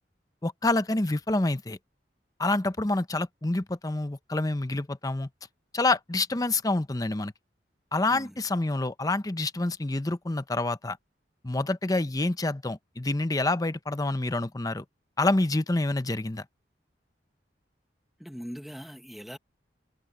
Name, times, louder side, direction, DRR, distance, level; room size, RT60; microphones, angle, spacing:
voice 1, 0.4-1.8 2.4-5.3 5.7-7.3 7.9-11.0 11.4-14.8 15.2-16.4, left 2 dB, 20° left, 0.7 m, -27 dB
voice 2, 18.2-19.4, equal, ahead, 1.5 m, -41 dB
head